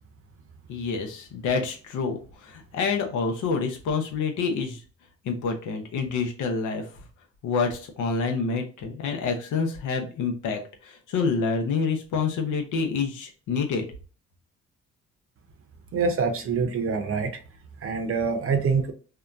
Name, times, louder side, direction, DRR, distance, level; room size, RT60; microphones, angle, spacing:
voice 1, 0.7-4.8 5.2-6.9 7.4-13.9, left 5 dB, 80° left, 3 dB, 0.7 m, -27 dB
voice 2, 15.9-17.3 17.8-18.9, right 5 dB, 45° right, 6 dB, 0.6 m, -25 dB
2.8 x 2.2 x 2.3 m, 0.37 s
cardioid pair, 90°, 30 cm